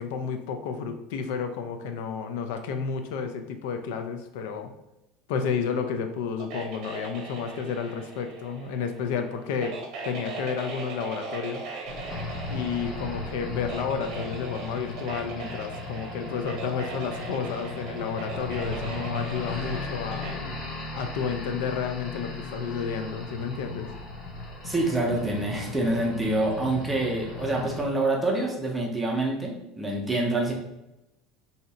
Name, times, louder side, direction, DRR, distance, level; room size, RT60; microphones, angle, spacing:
voice 1, 0.0-4.7 5.3-9.8 10.1-11.6 12.5-20.4 20.9-23.9, left 6 dB, 75° left, 7 dB, 0.4 m, -31 dB
sound 1, 6.4-20.3, right 4 dB, 45° right, 0.7 m, -39 dB
sound 2, 11.8-27.8, left 3 dB, 35° left, 0.8 m, -36 dB
voice 2, 24.6-30.5, right 2 dB, 5° right, -1 dB, 0.6 m, -26 dB
2.7 x 2.5 x 4.1 m, 0.90 s
cardioid pair, 180°, 0 cm